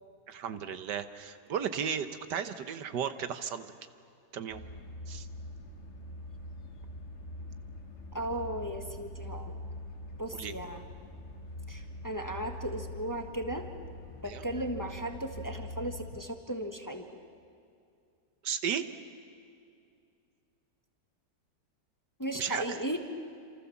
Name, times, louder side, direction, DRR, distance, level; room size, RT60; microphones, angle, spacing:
voice 1, 0.3-3.7 4.3-4.6 5.1-5.3 10.3-10.5 14.2-14.4 18.4-18.9 22.4-22.8, right 8 dB, 80° right, 10 dB, 1.7 m, -34 dB
sound 1, 4.5-16.1, left 1 dB, 45° left, 2.0 m, -43 dB
voice 2, 8.1-9.5 10.2-10.8 11.7-13.7 14.2-17.2 22.2-23.0, right 1 dB, 10° left, 5 dB, 1.4 m, -36 dB
28.5 x 27.0 x 7.2 m, 2.4 s
omnidirectional pair, 1.8 m